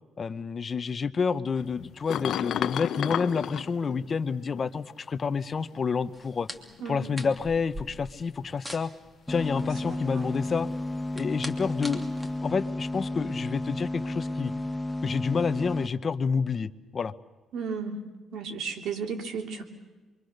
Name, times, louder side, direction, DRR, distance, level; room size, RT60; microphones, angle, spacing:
voice 1, 0.2-6.5 6.8-8.9 9.3-10.7 11.2-12.1 12.4-14.5 15.0-17.1, left 5 dB, 40° left, 13 dB, 0.8 m, -29 dB
sound 1, 1.5-4.8 5.7-6.8 7.5-8.1 12.2-12.3, left 10 dB, 75° left, 0.8 m, -34 dB
sound 2, 6.1-13.4, equal, 15° right, 2.8 m, -45 dB
voice 2, 6.8-7.2 9.5-10.3 17.5-18.0 18.3-19.6, right 5 dB, 75° right, 4 dB, 3.1 m, -35 dB
sound 3, 9.3-15.9, left 1 dB, 10° left, 1.1 m, -32 dB
28.0 x 23.5 x 6.6 m, 1.2 s
cardioid pair, 90°, 0 cm